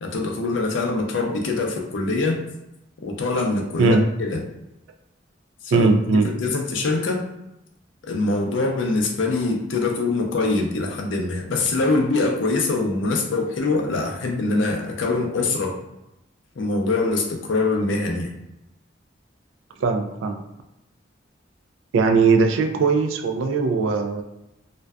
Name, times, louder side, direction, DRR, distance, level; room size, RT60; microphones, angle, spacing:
voice 1, 0.0-2.4 3.0-4.4 5.6-5.9 6.4-7.3 8.1-15.8 16.6-18.3, left 3 dB, 80° left, 2 dB, 0.5 m, -23 dB
voice 2, 5.7-6.3 19.8-20.4 21.9-24.2, right 4 dB, 90° right, 5 dB, 0.3 m, -19 dB
2.5 x 2.2 x 2.2 m, 0.89 s
head